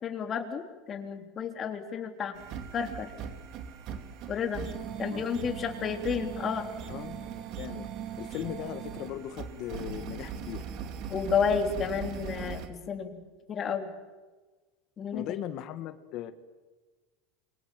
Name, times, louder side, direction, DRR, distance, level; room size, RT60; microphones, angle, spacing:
voice 1, 0.0-2.3 2.7-3.1 4.3-4.7 5.0-6.7 11.1-13.2 13.5-13.9 15.0-15.2, left 6 dB, 30° left, 5 dB, 3.4 m, -31 dB
sound 1, 2.3-12.7, right 8 dB, 50° right, 2.8 m, -39 dB
voice 2, 6.9-7.9 8.2-10.6 15.1-16.3, left 12 dB, 50° left, 11 dB, 1.8 m, -38 dB
28.5 x 24.0 x 7.7 m, 1.3 s
supercardioid pair, 135°, 0 cm